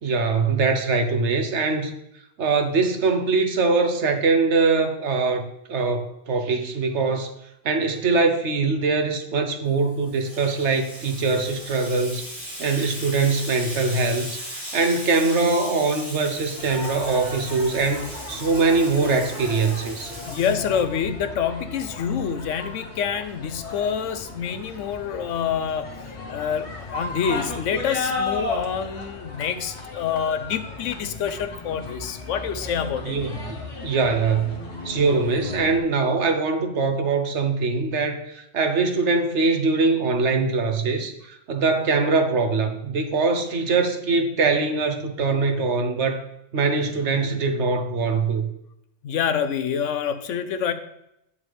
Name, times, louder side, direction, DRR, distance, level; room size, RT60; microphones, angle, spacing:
voice 1, 0.0-2.0 2.4-7.3 7.6-12.2 12.6-20.1 33.0-34.5 34.8-46.2 46.5-48.5, right 4 dB, 70° right, 6 dB, 1.2 m, -22 dB
Water tap faucet / Sink (filling or washing), 9.8-21.2, equal, 10° right, 3.0 m, -38 dB
sound 1, 16.6-35.8, left 3 dB, 60° left, 1.8 m, -35 dB
voice 2, 20.1-25.9 26.3-33.2 49.0-50.7, left 7 dB, 80° left, 11 dB, 1.0 m, -27 dB
8.7 x 6.9 x 3.4 m, 0.82 s
omnidirectional pair, 1.3 m